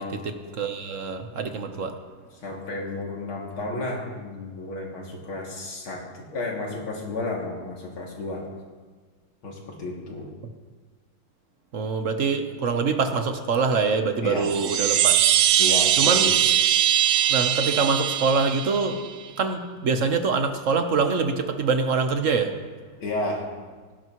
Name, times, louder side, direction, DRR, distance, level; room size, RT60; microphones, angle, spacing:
voice 1, 0.0-2.0 11.7-15.6 15.9-16.2 17.3-19.0 19.4-22.5, right 4 dB, 50° right, 6 dB, 1.1 m, -25 dB
voice 2, 2.4-8.5 9.4-10.3 14.2-14.5 15.6-16.3 23.0-23.4, left 2 dB, 85° left, -2 dB, 3.4 m, -32 dB
Chime, 14.4-19.1, right 11 dB, 70° right, 0.8 m, -21 dB
18.0 x 17.0 x 3.1 m, 1.5 s
omnidirectional pair, 2.3 m